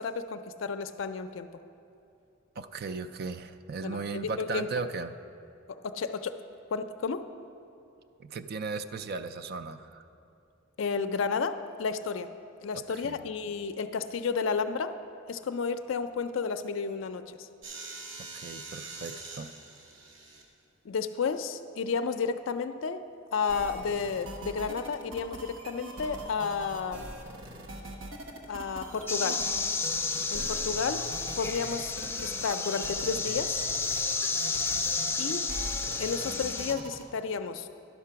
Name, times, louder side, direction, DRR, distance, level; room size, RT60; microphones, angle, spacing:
voice 1, 0.0-1.5 3.8-4.7 5.8-6.4 6.7-7.3 10.8-12.3 12.6-14.9 15.3-17.5 20.9-23.0 23.3-27.1 28.5-29.4 30.3-31.0 31.4-31.9 32.2-33.6 35.2-35.4 36.0-37.7, left 5 dB, 70° left, 9 dB, 0.4 m, -32 dB
voice 2, 2.6-5.1 8.2-10.0 12.7-13.2 18.2-19.5 30.4-30.5, right 4 dB, 50° right, 10 dB, 0.4 m, -37 dB
sound 1, 17.6-20.4 24.5-24.6 27.5-27.7 28.9-29.0 29.4-29.6 30.2-31.1 32.0-32.6 33.1-33.2 33.9-34.0 34.2-34.9, right 3 dB, 75° right, 1.4 m, -46 dB
sound 2, 23.5-37.0, right 1 dB, 90° right, 1.0 m, -42 dB
sound 3, 29.1-36.7, left 4 dB, 10° left, 0.5 m, -31 dB
11.0 x 5.9 x 5.6 m, 2.6 s
head